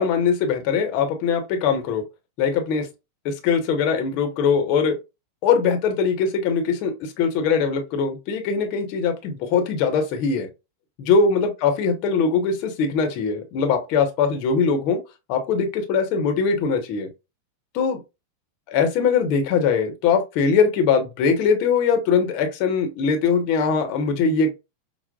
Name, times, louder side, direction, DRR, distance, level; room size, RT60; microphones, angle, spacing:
voice 1, 0.0-2.0 2.4-2.9 3.2-5.0 5.4-10.5 11.0-15.0 15.3-17.1 17.7-18.0 18.7-24.5, left 5 dB, 45° left, 0.9 m, -21 dB
5.8 x 2.1 x 2.3 m
figure-of-eight pair, 90°, 0 cm